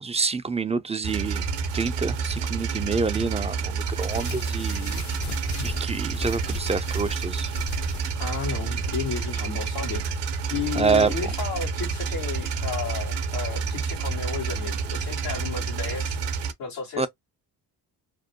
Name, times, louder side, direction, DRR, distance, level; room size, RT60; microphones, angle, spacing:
voice 1, 0.0-1.4 1.7-5.0 5.6-7.5 10.8-11.1 17.0-17.1, right 4 dB, 15° right, 0.3 m, -27 dB
sound 1, 1.0-16.5, right 5 dB, 60° right, 0.7 m, -29 dB
sound 2, 3.9-8.7, left 6 dB, 40° left, 0.5 m, -38 dB
voice 2, 8.2-10.0 10.5-16.2 16.6-17.1, left 6 dB, 90° left, 1.2 m, -33 dB
2.6 x 2.1 x 2.7 m
hypercardioid pair, 45°, 47 cm